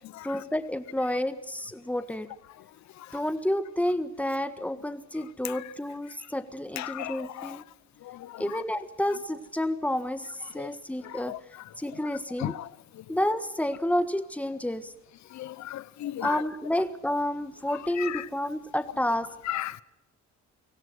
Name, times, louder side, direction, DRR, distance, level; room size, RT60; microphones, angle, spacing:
voice 1, 0.2-2.3 3.1-7.6 8.4-10.3 10.5-11.4 11.8-12.6 13.1-14.9 16.2-19.3, left 1 dB, 5° left, 1.5 m, -30 dB
voice 2, 6.8-7.6 8.1-8.4 10.6-10.7 11.3-11.4 12.4-12.5 15.3-16.4 18.0-18.2 19.5-19.8, left 14 dB, 70° left, 0.9 m, -34 dB
24.0 x 17.0 x 8.0 m
cardioid pair, 115°, 29 cm